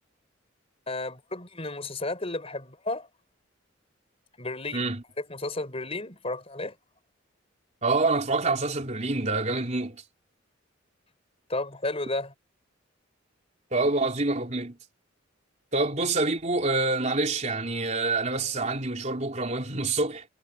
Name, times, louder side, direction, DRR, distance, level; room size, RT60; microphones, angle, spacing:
voice 1, 0.9-3.1 4.4-4.9 5.2-6.7 11.5-12.3, left 2 dB, 30° left, 4.8 m, -33 dB
voice 2, 4.7-5.0 7.8-10.0 13.7-14.8 15.7-20.3, right 3 dB, 35° right, 3.7 m, -26 dB
head